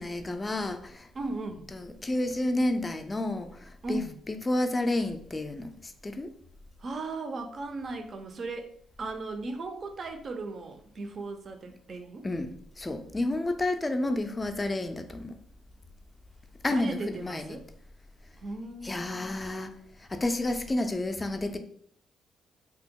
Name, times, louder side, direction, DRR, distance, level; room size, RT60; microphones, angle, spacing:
voice 1, 0.0-1.1 1.7-5.7 6.0-6.3 12.2-15.3 16.6-17.6 18.8-19.7 20.1-21.6, left 1 dB, 20° left, 7 dB, 0.3 m, -30 dB
voice 2, 1.1-1.7 3.8-4.1 6.8-8.7 9.0-12.3 16.7-17.7 18.4-19.4, right 3 dB, 45° right, 6 dB, 0.5 m, -37 dB
2.8 x 2.1 x 3.5 m, 0.63 s
cardioid pair, 90°, 0 cm